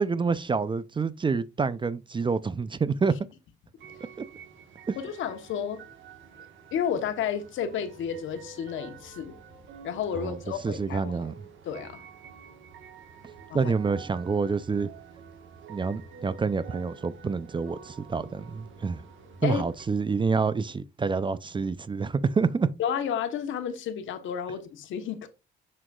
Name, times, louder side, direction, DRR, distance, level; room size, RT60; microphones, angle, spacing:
voice 1, 0.0-3.1 4.2-4.3 4.9-5.0 10.2-10.4 10.6-11.3 13.5-14.9 15.7-19.0 19.4-22.7, right 5 dB, 25° right, 0.4 m, -27 dB
sound 1, 3.8-19.8, right 6 dB, 75° right, 1.5 m, -49 dB
voice 2, 5.0-5.8 6.7-9.4 9.8-11.2 11.6-12.0 13.5-13.7 19.4-19.6 22.8-25.3, left 8 dB, 80° left, 1.1 m, -31 dB
6.5 x 6.1 x 2.4 m
cardioid pair, 90°, 20 cm